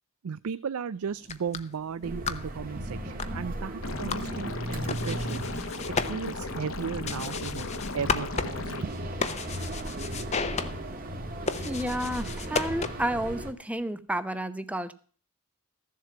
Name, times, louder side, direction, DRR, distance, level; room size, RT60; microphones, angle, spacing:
voice 1, 0.2-5.5 6.1-7.7 7.9-8.7, right 6 dB, 90° right, 15 dB, 0.4 m, -35 dB
sound 1, 1.1-13.2, left 5 dB, 30° left, 0.8 m, -36 dB
sound 2, 2.0-13.5, right 1 dB, 40° right, 1.7 m, -36 dB
Liquid, 3.8-8.8, left 3 dB, 70° left, 1.2 m, -37 dB
voice 2, 11.7-14.9, right 1 dB, 5° right, 12 dB, 0.8 m, -31 dB
14.5 x 7.5 x 5.9 m, 0.43 s
head